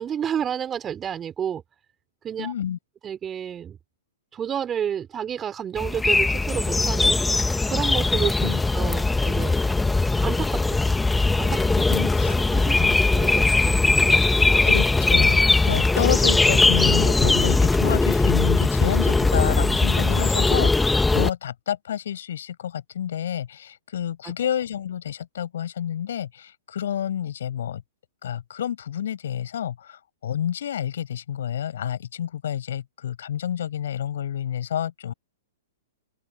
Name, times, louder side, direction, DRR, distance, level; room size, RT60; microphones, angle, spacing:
voice 1, 0.0-1.6 2.2-2.5 3.0-3.8 4.3-7.1 7.7-8.3 8.7-9.6 10.2-10.8 11.4-11.9 12.2-12.8 13.1-14.7, right 8 dB, 20° right, 4.2 m, -30 dB
voice 2, 2.4-2.8 8.4-8.6 11.9-12.4 12.8-13.0 14.6-27.8 28.2-35.1, left 10 dB, 65° left, 6.6 m, -29 dB
sound 1, 5.8-21.3, left 3 dB, 5° left, 1.6 m, -20 dB
open air
hypercardioid pair, 115°, 0 cm